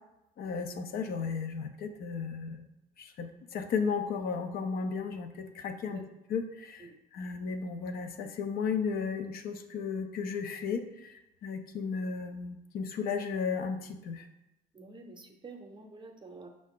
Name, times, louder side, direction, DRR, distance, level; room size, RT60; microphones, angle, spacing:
voice 1, 0.4-2.6 3.0-6.0 6.3-14.3, left 5 dB, 65° left, 6 dB, 0.5 m, -34 dB
voice 2, 14.7-16.5, right 3 dB, 30° right, 4 dB, 0.7 m, -48 dB
5.5 x 2.5 x 3.6 m, 0.90 s
cardioid pair, 110°, 17 cm